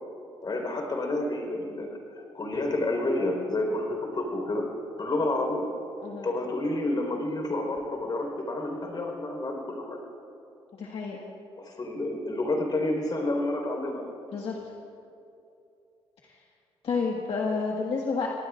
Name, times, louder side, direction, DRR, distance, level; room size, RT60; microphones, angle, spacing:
voice 1, 0.4-1.9 2.2-4.7 5.0-5.6 6.2-10.0 11.6-14.0, left 2 dB, 40° left, 1 dB, 4.4 m, -29 dB
voice 2, 10.7-11.2 14.3-14.6 16.2-16.4 16.8-18.3, left 4 dB, 60° left, -2 dB, 1.7 m, -30 dB
26.0 x 18.5 x 2.5 m, 2.7 s
cardioid pair, 75°, 11 cm